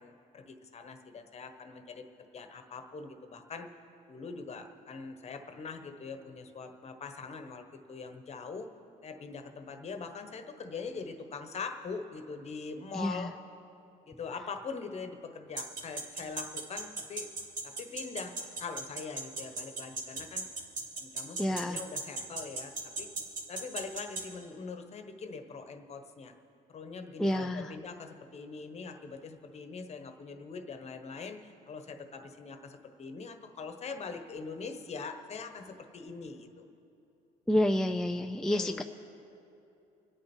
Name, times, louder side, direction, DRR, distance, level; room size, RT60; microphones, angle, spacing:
voice 1, 0.0-2.0 2.3-3.7 4.1-8.7 9.0-13.4 14.1-17.3 17.6-20.5 21.0-23.1 23.5-26.3 26.7-36.6 38.3-38.8, left 4 dB, 40° left, 7 dB, 1.3 m, -42 dB
voice 2, 13.0-13.3 21.4-21.8 27.2-27.7 37.5-38.8, left 1 dB, 5° left, 6 dB, 0.4 m, -29 dB
sound 1, 15.6-24.2, right 3 dB, 55° right, 2.3 m, -35 dB
26.0 x 8.7 x 4.5 m, 2.8 s
cardioid pair, 110°, 17 cm